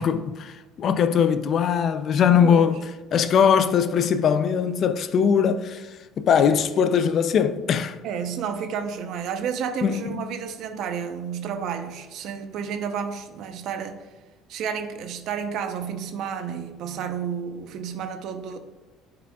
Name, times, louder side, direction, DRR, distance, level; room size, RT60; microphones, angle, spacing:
voice 1, 0.0-2.8 3.1-5.9 6.2-8.0 9.8-10.0, left 7 dB, 45° left, 0.4 m, -21 dB
voice 2, 8.0-14.1 14.5-18.6, right 7 dB, 65° right, 0.7 m, -31 dB
9.1 x 4.9 x 2.3 m
cardioid pair, 120°, 0 cm